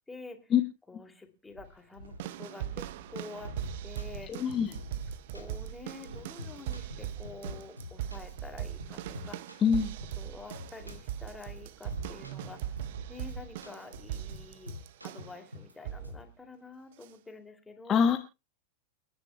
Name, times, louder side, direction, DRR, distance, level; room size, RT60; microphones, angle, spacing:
voice 1, 0.1-0.5 0.9-3.5 3.8-4.5 5.3-9.4 10.1-12.7 13.1-14.7 15.0-18.2, left 3 dB, 10° left, 5 dB, 2.5 m, -48 dB
sound 1, 1.5-2.4 2.8-6.4 6.8-7.9 8.3-8.6 8.9-9.3 10.2-13.6 13.9-14.2, right 2 dB, 70° right, 2.1 m, -49 dB
sound 2, 2.2-15.4 15.8-16.2 17.0-17.1, right 12 dB, 55° right, 0.7 m, -40 dB
sound 3, 3.4-4.7 5.0-5.6 5.9-6.0 6.4-7.5 7.8-10.3 10.5-11.1 11.4-11.6 11.9-13.0 13.3-13.9 14.1-15.7 16.0-16.3, left 2 dB, 85° right, 2.8 m, -46 dB
voice 2, 4.3-4.7 9.6-9.9 17.9-18.2, left 7 dB, 25° left, 5 dB, 1.2 m, -24 dB
29.5 x 10.5 x 2.2 m, 0.28 s
figure-of-eight pair, 90°, 0 cm